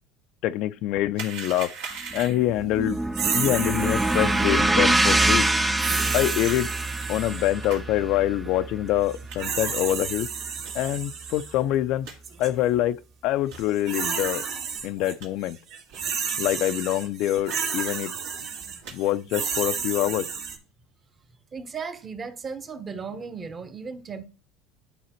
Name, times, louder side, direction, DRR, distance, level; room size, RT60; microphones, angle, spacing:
voice 1, 0.4-1.7 2.1-3.0 3.3-5.5 6.1-6.7 7.1-10.3 10.7-12.1 12.4-14.4 14.8-15.6 16.4-18.1 18.9-20.3, left 14 dB, 60° left, 0.3 m, -25 dB
sound 1, 1.1-2.6 5.8-5.9 6.5-6.6 7.6-7.8 8.4-8.5 9.3-9.4 9.8-10.1 10.6-10.7 11.3-11.4 11.6-11.7 12.0-12.2 12.7-12.8 13.4-13.7 14.2-14.3 14.8-15.3 15.9-16.1 16.4-16.5 16.8-16.9 17.5-17.6 17.8-18.2 18.6-19.0 19.5-19.8, right 5 dB, 85° right, 2.3 m, -40 dB
sound 2, 2.1-10.4, right 2 dB, 10° right, 0.5 m, -25 dB
sound 3, 3.1-4.7 5.8-7.6 9.1-11.5 12.2-12.5 13.5-15.1 15.4-20.6, right 6 dB, 65° right, 2.0 m, -31 dB
voice 2, 21.5-24.3, right 5 dB, 25° right, 0.9 m, -36 dB
11.0 x 4.1 x 3.0 m
supercardioid pair, 120°, 0 cm